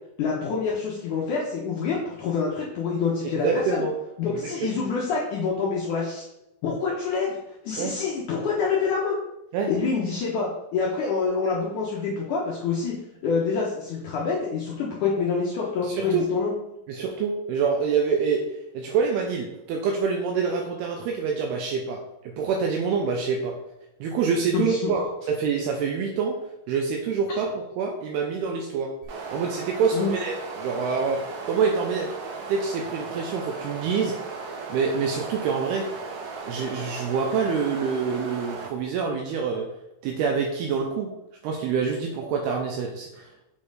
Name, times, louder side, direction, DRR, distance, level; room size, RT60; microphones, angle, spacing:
voice 1, 0.2-3.8 4.2-6.2 6.6-7.4 7.6-9.2 9.7-12.9 13.2-16.5 24.5-24.9 29.9-30.1, left 5 dB, 85° left, -4 dB, 1.7 m, -26 dB
voice 2, 3.4-3.9 4.3-4.7 7.8-7.9 9.5-9.7 15.8-16.3 16.9-18.4 18.7-22.0 22.2-23.6 24.0-26.4 26.7-28.9 29.3-32.1 32.5-34.1 34.7-35.8 36.5-39.7 40.0-41.1 41.4-43.3, right 5 dB, 80° right, 1 dB, 2.5 m, -26 dB
sound 1, 29.0-38.7, right 4 dB, 60° right, 2.5 m, -36 dB
7.6 x 4.4 x 4.8 m, 0.89 s
omnidirectional pair, 5.1 m